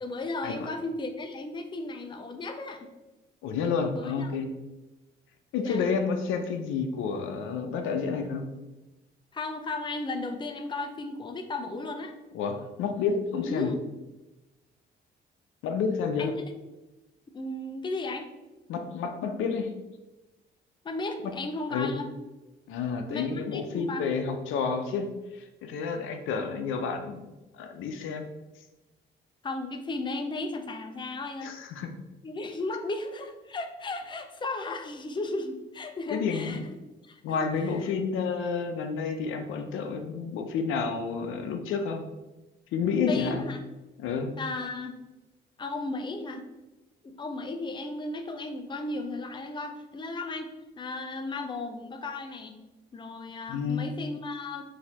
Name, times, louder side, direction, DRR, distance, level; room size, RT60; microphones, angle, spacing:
voice 1, 0.0-2.9 3.9-4.3 5.6-5.9 9.3-12.1 13.4-13.8 16.2-16.3 17.3-18.3 20.8-22.1 23.1-24.0 29.4-31.5 32.2-36.7 37.0-37.8 43.1-43.6 44.4-45.0 45.6-46.4 47.0-50.5 50.8-52.6 52.9-54.6, left 2 dB, 25° left, 6 dB, 0.5 m, -35 dB
voice 2, 3.4-4.5 5.5-8.5 12.3-13.7 15.6-16.3 18.7-19.7 21.2-21.3 21.7-21.9 22.7-25.1 25.3-27.2 27.5-28.3 31.4-31.9 36.1-36.6 37.2-42.0 42.7-43.5 44.0-44.3 53.5-53.9, left 5 dB, 85° left, 6 dB, 0.6 m, -30 dB
4.0 x 2.7 x 4.1 m, 1.1 s
cardioid pair, 90°, 20 cm